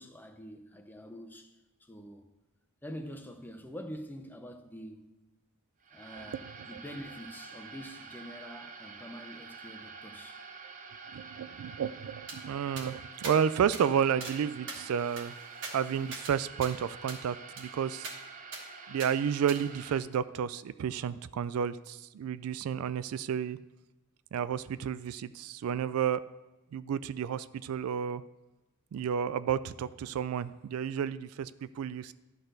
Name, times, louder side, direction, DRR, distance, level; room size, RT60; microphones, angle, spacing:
voice 1, 0.0-2.3 2.8-5.2 5.9-10.4, equal, 10° left, 0.7 m, -46 dB
sound 1, 5.8-20.0, right 5 dB, 35° right, 0.7 m, -47 dB
voice 2, 11.1-15.4 15.7-18.1 18.9-23.6 24.3-26.2 26.7-28.2 28.9-32.1, right 8 dB, 75° right, 0.3 m, -31 dB
sound 2, 12.3-12.4 12.8-12.9 13.2-13.4 13.7-13.8 14.2-14.4 14.7-16.3 16.6-16.7 17.1-17.2 17.6-17.7 18.0-18.2 18.5-18.6 19.0-19.1 19.5-19.6, right 3 dB, 60° right, 1.8 m, -42 dB
11.5 x 4.1 x 6.5 m
head